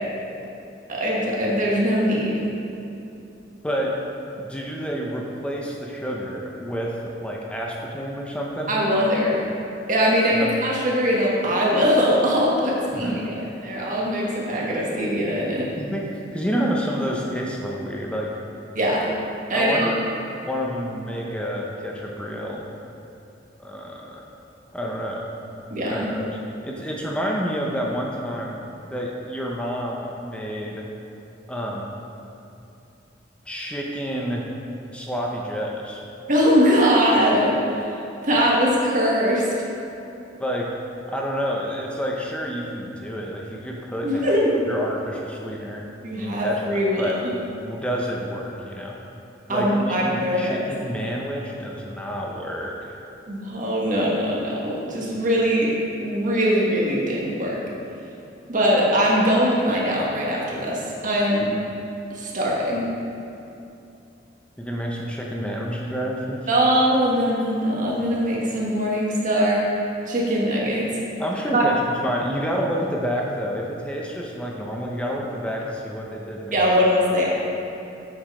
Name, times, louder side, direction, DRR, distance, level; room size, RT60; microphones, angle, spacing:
voice 1, 0.9-2.4 8.7-9.4 9.9-15.7 18.7-19.0 19.5-19.9 25.7-26.1 36.3-37.9 38.2-39.5 44.0-44.5 46.0-47.2 49.5-50.7 53.3-55.7 56.0-57.6 58.5-61.5 62.1-62.9 66.5-69.6 70.0-70.9 71.5-71.6 76.5-77.3, equal, 45° right, -4 dB, 1.5 m, -21 dB
voice 2, 3.6-4.0 4.4-8.7 10.3-10.5 12.9-13.3 15.8-18.3 19.5-20.0 20.5-22.6 23.6-24.3 24.7-25.2 25.9-26.3 26.6-28.6 28.9-30.8 31.5-31.9 33.5-34.5 34.9-36.0 40.4-40.7 41.1-44.3 44.7-45.8 46.2-47.2 47.6-49.0 49.5-52.8 64.6-66.5 71.2-76.6, equal, 5° left, -2 dB, 0.7 m, -29 dB
7.3 x 7.2 x 4.8 m, 2.8 s
head